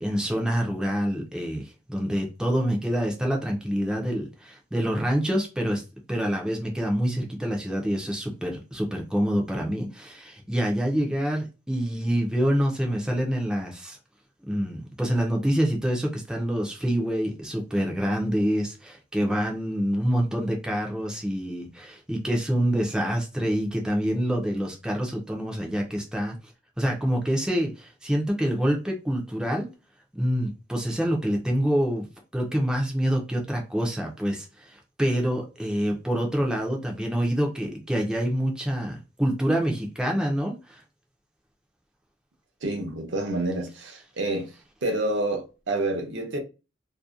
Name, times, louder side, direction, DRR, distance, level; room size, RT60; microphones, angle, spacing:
voice 1, 0.0-5.8 6.1-14.0 14.5-26.4 26.8-29.7 30.1-32.1 32.3-40.8, equal, 5° right, 0.4 m, -26 dB
voice 2, 42.6-44.5 44.8-46.4, right 2 dB, 70° right, 0.7 m, -28 dB
2.6 x 2.1 x 2.3 m
head